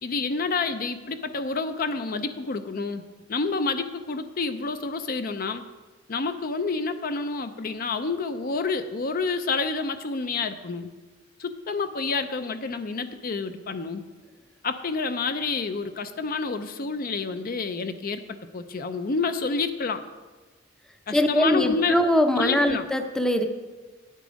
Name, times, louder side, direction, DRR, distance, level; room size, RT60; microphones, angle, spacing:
voice 1, 0.0-3.0 3.3-5.6 6.1-10.9 11.4-14.1 14.6-18.2 18.5-20.0 21.1-22.0 22.4-22.9, left 4 dB, 50° left, 9 dB, 0.5 m, -28 dB
voice 2, 21.1-23.5, left 1 dB, 5° left, 6 dB, 0.6 m, -22 dB
9.4 x 8.3 x 5.1 m, 1.3 s
head